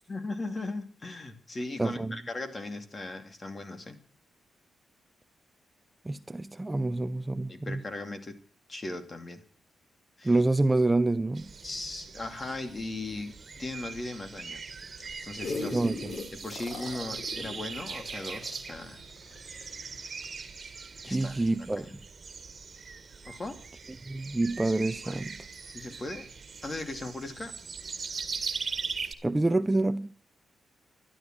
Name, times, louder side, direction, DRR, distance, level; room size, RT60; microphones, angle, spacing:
voice 1, 0.1-4.0 7.5-8.4 8.7-9.4 10.2-10.4 11.6-14.6 15.2-15.8 16.3-19.0 21.0-21.4 21.8-22.0 23.2-23.6 24.6-24.7 25.0-25.2 25.7-26.3 26.6-27.5, left 2 dB, 35° left, 2.5 m, -38 dB
voice 2, 1.8-2.1 6.0-7.8 10.2-11.5 15.7-16.1 21.0-21.9 24.1-25.3 29.2-30.1, right 2 dB, 15° right, 0.6 m, -27 dB
sound 1, 11.3-29.1, right 5 dB, 40° right, 2.0 m, -41 dB
sound 2, 15.0-19.7 20.2-20.3, left 3 dB, 55° left, 3.7 m, -39 dB
12.0 x 11.5 x 7.6 m
cardioid pair, 75°, 0 cm